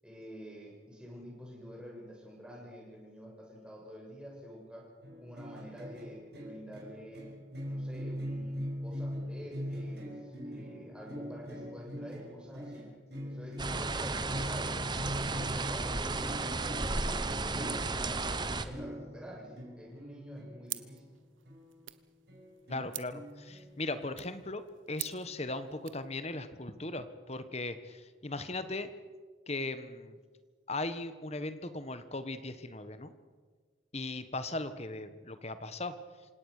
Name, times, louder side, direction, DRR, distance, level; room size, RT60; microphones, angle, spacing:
voice 1, 0.0-4.8 5.2-7.3 7.7-12.9 13.2-15.2 15.5-21.0, equal, 5° right, -3 dB, 6.7 m, -48 dB
sound 1, 5.0-22.0 22.3-24.0, equal, 55° right, 6.5 m, -42 dB
sound 2, 13.6-18.7, right 3 dB, 20° right, 1.0 m, -34 dB
sound 3, 20.7-26.1, right 17 dB, 80° right, 1.1 m, -46 dB
voice 2, 22.7-28.9 29.5-30.2 30.7-33.1 33.9-35.9, left 2 dB, 35° left, 11 dB, 1.3 m, -38 dB
27.5 x 17.5 x 6.6 m, 1.5 s
head